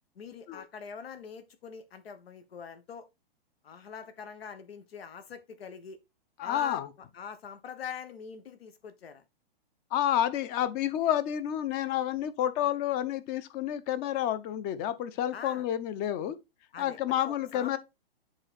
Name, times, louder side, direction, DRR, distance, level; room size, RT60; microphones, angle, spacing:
voice 1, 0.1-3.1 3.6-6.0 6.4-6.8 7.1-9.2 15.3-15.6 16.7-17.8, left 6 dB, 75° left, 1.3 m, -43 dB
voice 2, 6.4-6.9 9.9-16.4 16.8-17.8, left 11 dB, 30° left, 0.8 m, -29 dB
7.8 x 3.9 x 4.3 m
hypercardioid pair, 125°, 31 cm